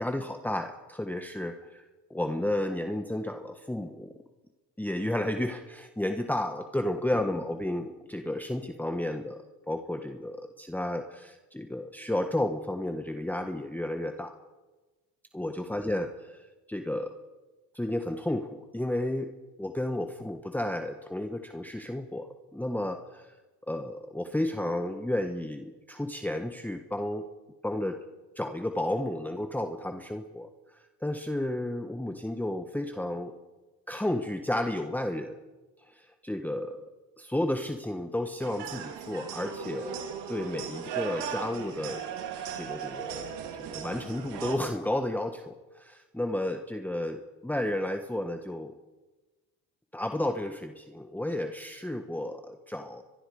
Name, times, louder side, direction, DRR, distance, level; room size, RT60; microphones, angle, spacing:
voice 1, 0.0-1.8 2.1-4.1 4.8-9.4 9.7-14.3 15.3-16.4 16.7-17.1 17.7-19.3 19.6-23.3 23.7-27.3 27.6-28.0 28.4-33.3 33.9-35.4 35.8-36.8 37.2-42.0 42.5-48.7 49.9-53.0, left 1 dB, 5° left, 6 dB, 1.4 m, -32 dB
sound 1, 38.4-44.6, right 7 dB, 80° right, 3.5 m, -37 dB
23.5 x 22.5 x 5.1 m, 1.2 s
cardioid pair, 85°, 41 cm